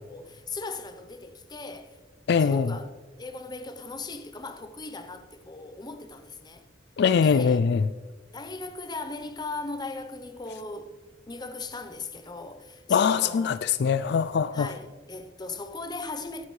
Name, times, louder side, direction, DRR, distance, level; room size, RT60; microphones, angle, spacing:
voice 1, 0.0-1.9 2.4-2.9 3.2-6.7 7.2-7.6 8.3-10.9 11.3-13.5 14.5-16.4, left 3 dB, 25° left, 0.8 m, -38 dB
voice 2, 2.3-2.7 7.0-7.9 12.9-14.7, left 6 dB, 65° left, 0.3 m, -22 dB
17.5 x 9.6 x 3.2 m
head